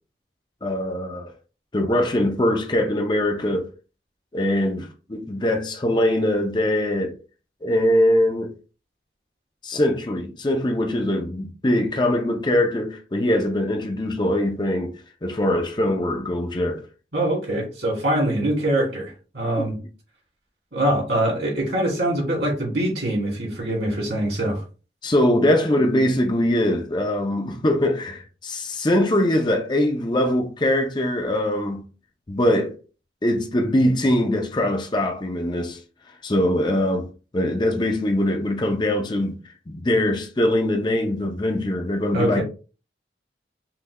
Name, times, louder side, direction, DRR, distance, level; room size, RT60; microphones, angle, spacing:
voice 1, 0.6-1.3 1.7-3.7 4.3-7.2 7.6-8.5 9.6-15.0 15.2-16.8 19.6-19.7 25.0-31.9 32.3-32.8 33.2-35.8 36.2-39.4 39.7-42.4, left 1 dB, 25° left, 0.5 m, -22 dB
voice 2, 17.1-19.8 20.7-24.6 42.1-42.4, right 1 dB, 70° right, 2.5 m, -23 dB
5.7 x 3.1 x 2.3 m
head